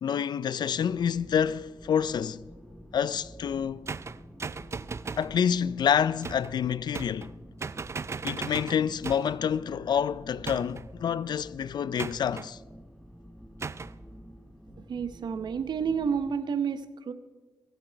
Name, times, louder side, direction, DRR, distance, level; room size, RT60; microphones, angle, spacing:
voice 1, 0.0-2.4 2.9-3.9 5.2-7.3 8.2-12.6, left 8 dB, 70° left, 0.4 m, -28 dB
sound 1, 0.7-16.4, equal, 5° left, 1.0 m, -49 dB
sound 2, 3.9-5.3 6.2-6.6 6.9-7.3 7.6-9.4 10.4-10.9 12.0-12.5 13.6-14.0, right 5 dB, 35° right, 0.4 m, -37 dB
voice 2, 14.9-17.1, right 6 dB, 70° right, 0.8 m, -30 dB
21.5 x 9.1 x 4.6 m
cardioid pair, 75°, 8 cm